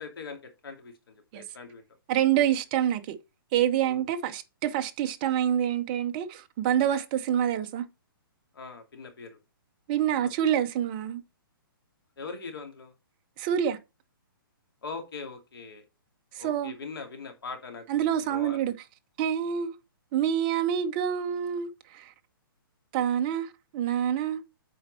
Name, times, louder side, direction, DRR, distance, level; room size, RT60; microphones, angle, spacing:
voice 1, 0.0-1.8 3.8-4.0 8.5-9.4 10.1-10.3 12.2-12.9 14.8-15.8 16.4-18.7, left 4 dB, 75° left, 2.5 m, -41 dB
voice 2, 2.1-3.2 3.5-7.9 9.9-11.2 13.4-13.8 16.3-16.7 17.9-18.7 19.2-19.7 20.1-22.1 22.9-24.4, right 10 dB, 25° right, 0.6 m, -27 dB
8.4 x 4.4 x 4.1 m
hypercardioid pair, 165°, 12 cm